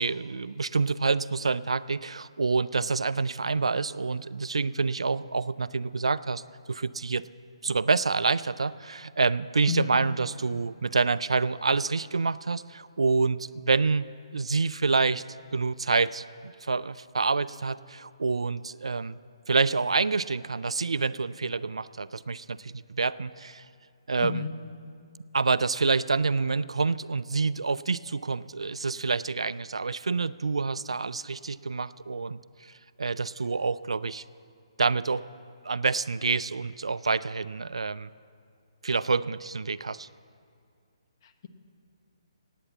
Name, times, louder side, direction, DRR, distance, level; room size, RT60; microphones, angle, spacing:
voice 1, 0.0-6.4 6.7-7.2 7.6-14.1 14.3-15.2 15.5-19.2 19.5-23.6 24.1-24.4 25.3-32.7 33.0-34.2 34.8-35.2 35.6-38.1 38.8-40.1, right 4 dB, 80° right, 17 dB, 0.4 m, -27 dB
voice 2, 9.7-10.0 24.2-24.5 41.2-41.5, left 6 dB, 45° left, 7 dB, 1.1 m, -32 dB
17.5 x 9.1 x 7.2 m, 2.3 s
figure-of-eight pair, 140°, 3 cm